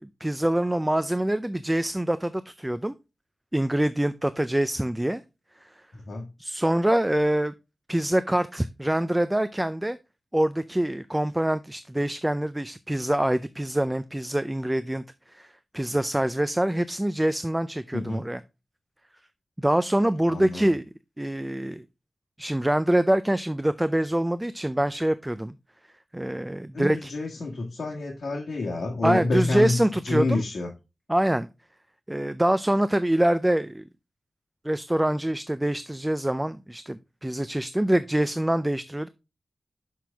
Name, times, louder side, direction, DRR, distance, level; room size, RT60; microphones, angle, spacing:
voice 1, 0.0-2.9 3.5-5.2 6.4-7.5 7.9-10.0 10.3-18.4 19.6-20.8 21.2-21.8 22.4-25.5 26.1-27.1 29.0-30.4 31.1-31.5 32.1-33.8 34.6-39.1, right 1 dB, 10° right, 0.4 m, -25 dB
voice 2, 20.3-20.7 26.7-29.8 30.0-30.7, left 2 dB, 85° left, 1.5 m, -28 dB
6.3 x 6.0 x 3.4 m
wide cardioid pair, 110°, 0 cm